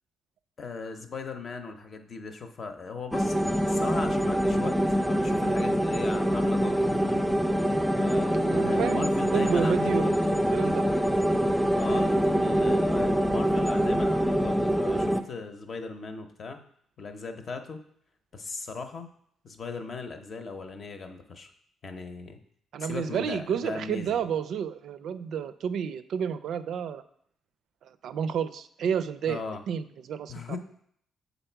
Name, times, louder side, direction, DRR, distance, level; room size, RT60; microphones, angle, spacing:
voice 1, 0.6-4.8 5.1-7.2 8.0-10.3 11.8-16.6 17.0-17.8 18.3-19.1 19.4-21.5 21.8-22.4 22.8-24.2 29.3-29.6 30.3-30.6, left 4 dB, 45° left, 6 dB, 0.8 m, -38 dB
sound 1, 3.1-15.2, equal, ahead, 0.4 m, -25 dB
voice 2, 8.5-10.8 22.7-27.0 27.8-30.6, right 7 dB, 70° right, 12 dB, 0.4 m, -31 dB
6.7 x 4.1 x 4.5 m, 0.67 s
cardioid pair, 90°, 0 cm